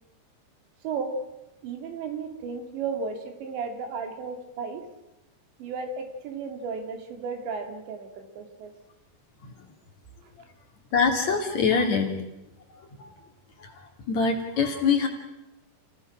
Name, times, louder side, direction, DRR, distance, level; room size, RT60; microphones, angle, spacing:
voice 1, 0.8-1.2 1.6-4.8 5.6-8.7 11.7-11.9, right 5 dB, 75° right, 5 dB, 4.8 m, -34 dB
voice 2, 10.9-12.1 13.0-13.1 13.6-13.7 14.1-15.1, left 5 dB, 45° left, 3 dB, 3.0 m, -24 dB
29.5 x 17.0 x 6.1 m, 0.94 s
omnidirectional pair, 5.1 m